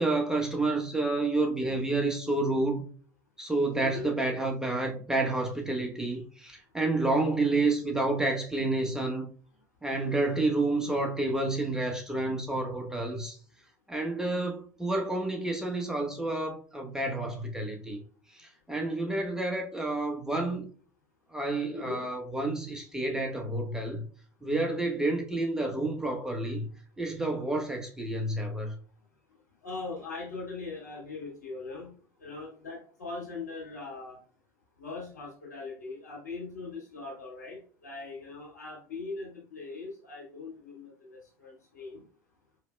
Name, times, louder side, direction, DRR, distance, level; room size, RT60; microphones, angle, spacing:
voice 1, 0.0-2.8 3.4-9.3 9.8-13.4 13.9-18.0 18.3-20.7 21.3-24.1 24.4-26.7 27.0-28.8, right 2 dB, 5° right, 1.0 m, -29 dB
voice 2, 21.7-22.0 29.6-31.9 32.2-34.2 34.8-42.0, left 3 dB, 90° left, 1.9 m, -40 dB
4.7 x 3.2 x 2.2 m
hypercardioid pair, 85°, 9 cm